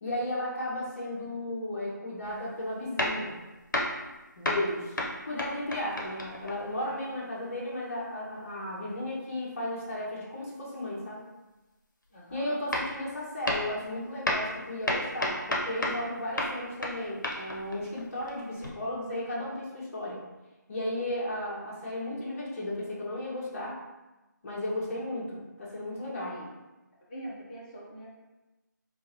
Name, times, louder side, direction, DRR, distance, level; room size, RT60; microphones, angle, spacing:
voice 1, 0.0-3.3 4.4-11.2 12.3-20.2 20.7-23.8 24.4-26.4, left 1 dB, 45° left, -6 dB, 1.1 m, -34 dB
sound 1, 2.2-2.5 3.0-4.2 4.4-6.8 12.3-12.4 12.7-13.1 13.4-13.8 14.2-16.1 16.4-18.7, left 1 dB, 75° left, 0.8 m, -32 dB
voice 2, 12.1-12.6 26.1-26.5 27.1-28.1, right 1 dB, 25° left, -6 dB, 0.8 m, -43 dB
3.7 x 2.5 x 2.7 m, 1.1 s
figure-of-eight pair, 160°, 10 cm